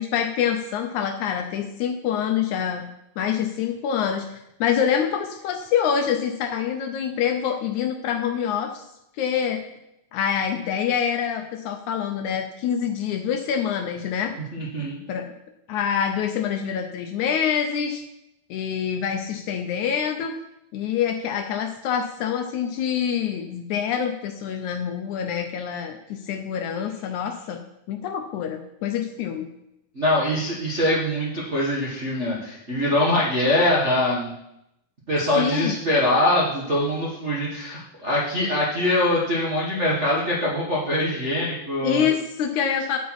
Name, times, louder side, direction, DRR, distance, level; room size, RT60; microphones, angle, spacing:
voice 1, 0.0-2.9 3.2-8.8 9.2-9.6 10.1-14.3 15.1-15.3 15.7-18.0 18.5-20.4 20.7-27.6 27.9-29.5 35.4-35.8 41.8-43.0, left 8 dB, 80° left, 5 dB, 1.7 m, -26 dB
voice 2, 14.5-15.0 29.9-34.3 35.1-42.0, left 1 dB, 50° right, -6 dB, 0.8 m, -23 dB
8.3 x 8.2 x 4.7 m, 0.83 s
omnidirectional pair, 4.1 m